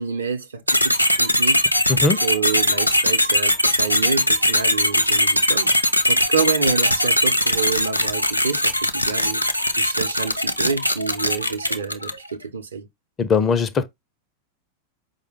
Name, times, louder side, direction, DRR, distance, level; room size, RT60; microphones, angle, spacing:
voice 1, 0.0-1.7 2.2-5.8 6.1-9.4 9.8-12.9, right 5 dB, 70° right, 0.6 m, -28 dB
sound 1, 0.7-12.3, left 1 dB, 90° left, 0.5 m, -20 dB
voice 2, 1.9-2.2 13.2-13.9, left 5 dB, 25° left, 0.5 m, -20 dB
4.8 x 2.1 x 3.3 m
figure-of-eight pair, 90°, 0 cm